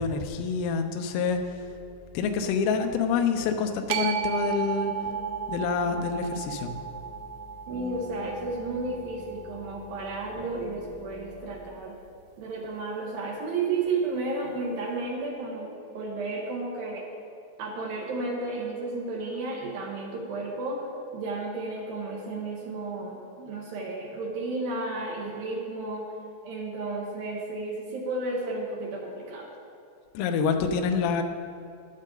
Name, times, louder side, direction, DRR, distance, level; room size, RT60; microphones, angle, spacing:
voice 1, 0.0-1.4 2.1-4.9 5.5-6.7 30.1-31.2, left 5 dB, 85° left, 6 dB, 3.3 m, -27 dB
sound 1, 1.3-11.8, left 1 dB, ahead, 0.9 m, -47 dB
sound 2, 3.9-10.1, right 8 dB, 90° right, 2.6 m, -34 dB
voice 2, 7.7-12.0 12.4-17.1 17.6-26.1 26.4-29.5, right 3 dB, 75° right, -2 dB, 2.2 m, -33 dB
19.5 x 6.5 x 3.8 m, 2.4 s
omnidirectional pair, 5.8 m